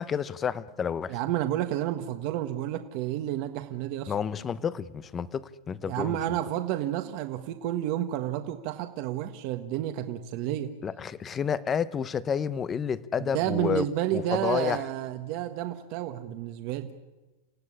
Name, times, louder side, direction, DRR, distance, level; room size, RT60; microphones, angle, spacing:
voice 1, 0.0-1.1 4.1-6.2 10.8-13.8 14.1-14.8, left 7 dB, 20° left, 0.8 m, -30 dB
voice 2, 1.1-4.1 5.9-10.7 13.2-16.9, right 12 dB, 45° right, 1.4 m, -30 dB
29.0 x 16.0 x 9.9 m
supercardioid pair, 160°, 0 cm